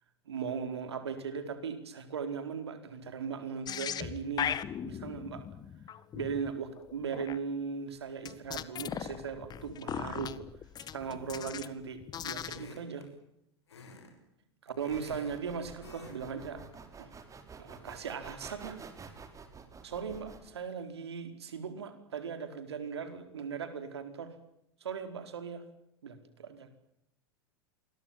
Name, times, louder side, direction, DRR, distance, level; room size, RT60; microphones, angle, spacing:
voice 1, 0.2-4.5 4.8-5.4 6.1-10.4 10.9-13.1 14.6-16.6 17.0-17.1 17.6-18.8 19.8-24.3 24.8-25.6 26.0-26.7, right 6 dB, 75° right, 9 dB, 4.6 m, -38 dB
sound 1, 3.7-7.4 8.3-11.7 12.0-12.7, left 9 dB, 30° left, 1.7 m, -39 dB
sound 2, 11.4-11.8 12.4-13.1 13.7-14.1 14.4-15.4 15.8-16.2 16.5-16.7, left 3 dB, 80° left, 6.7 m, -51 dB
sound 3, 14.8-20.5, right 5 dB, 25° right, 5.0 m, -49 dB
28.0 x 23.0 x 7.5 m, 0.81 s
figure-of-eight pair, 90°, 14 cm